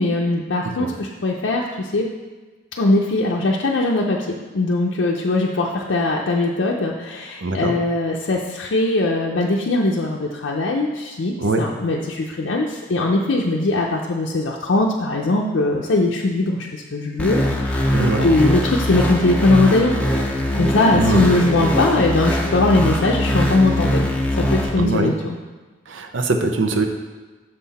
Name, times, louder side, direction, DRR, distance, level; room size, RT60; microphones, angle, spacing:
voice 1, 0.0-2.1 2.8-17.8 18.2-24.1 24.3-25.4, left 2 dB, 70° left, -1 dB, 0.5 m, -20 dB
voice 2, 7.4-7.8 11.4-11.7 17.9-18.3 20.9-21.2 24.8-25.1 25.9-26.9, right 2 dB, 75° right, 5 dB, 0.7 m, -21 dB
sound 1, 17.2-24.7, left 1 dB, 5° left, 0.6 m, -21 dB
6.6 x 5.7 x 4.1 m, 1.3 s
head